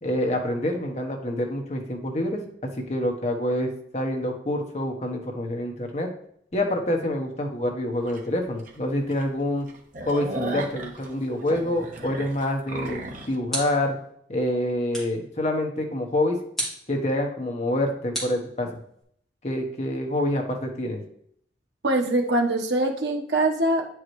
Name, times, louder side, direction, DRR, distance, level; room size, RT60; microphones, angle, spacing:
voice 1, 0.0-6.1 6.5-9.7 10.0-14.0 14.3-16.4 16.9-18.7 19.4-21.0, left 1 dB, 40° left, 2 dB, 1.1 m, -27 dB
sound 1, 8.1-8.2 8.7-8.8 9.1-9.2 9.6-13.3, right 2 dB, 45° right, 1.1 m, -36 dB
sound 2, 13.4-14.0 14.9-15.3 16.5-16.9 18.1-19.0, right 1 dB, ahead, 2.4 m, -34 dB
voice 2, 21.8-23.9, right 2 dB, 70° right, 2 dB, 1.2 m, -23 dB
9.5 x 4.8 x 3.2 m, 0.69 s
head